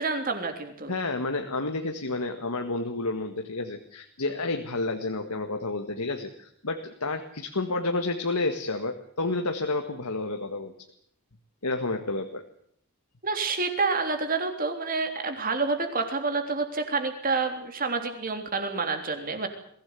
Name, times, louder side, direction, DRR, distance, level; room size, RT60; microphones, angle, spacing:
voice 1, 0.0-0.9 13.2-19.5, right 4 dB, 40° right, 6 dB, 3.5 m, -28 dB
voice 2, 0.9-10.7 11.6-12.5, left 2 dB, 80° left, 5 dB, 1.8 m, -30 dB
22.5 x 16.5 x 9.7 m, 0.66 s
head